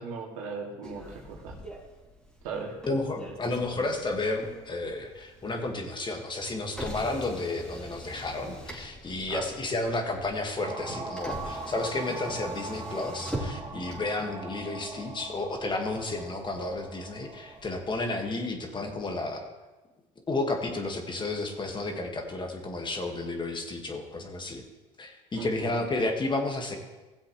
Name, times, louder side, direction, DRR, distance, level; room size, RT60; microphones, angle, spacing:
voice 1, 0.0-1.6 2.4-2.8 9.3-9.5 25.4-25.7, right 5 dB, 85° right, -1 dB, 2.3 m, -37 dB
Motor vehicle (road), 0.8-18.0, right 1 dB, 5° left, 3.0 m, -44 dB
voice 2, 2.9-19.5 20.3-24.6 25.0-26.8, left 2 dB, 30° left, 3 dB, 1.7 m, -32 dB
sound 1, 10.6-17.6, right 3 dB, 25° right, 2.3 m, -41 dB
16.5 x 7.5 x 3.2 m, 1.2 s
supercardioid pair, 80°, 17 cm